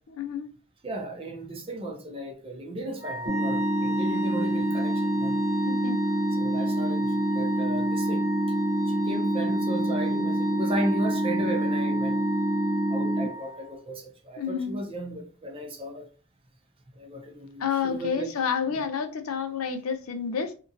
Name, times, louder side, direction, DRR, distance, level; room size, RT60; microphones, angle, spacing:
voice 1, 0.1-0.5 5.6-6.0 14.4-14.8 17.6-20.5, left 6 dB, 70° left, 0.5 m, -29 dB
voice 2, 0.8-5.4 6.4-8.2 8.9-12.2 12.9-16.1 17.0-18.3 18.7-18.8, right 1 dB, 25° right, 0.5 m, -35 dB
Wind instrument woodwind instrument, 3.0-13.8, equal, 45° left, 0.8 m, -36 dB
sound 1, 3.3-13.3, right 1 dB, 45° right, 0.9 m, -26 dB
2.8 x 2.6 x 2.6 m
head